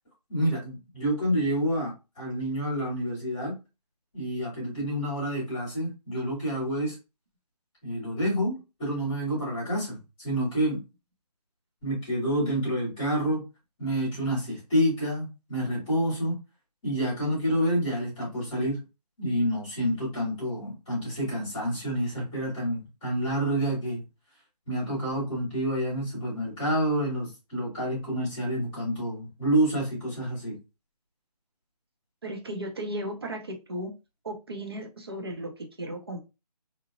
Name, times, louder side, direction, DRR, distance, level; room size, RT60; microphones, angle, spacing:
voice 1, 0.3-3.5 4.1-6.9 7.8-10.8 11.8-13.4 13.8-16.4 16.8-18.8 19.2-24.0 24.7-30.6, equal, 5° left, -13 dB, 0.7 m, -28 dB
voice 2, 32.2-33.9 34.2-36.2, right 1 dB, 35° right, 3 dB, 0.5 m, -35 dB
2.9 x 2.0 x 2.4 m, 0.27 s
figure-of-eight pair, 170°, 21 cm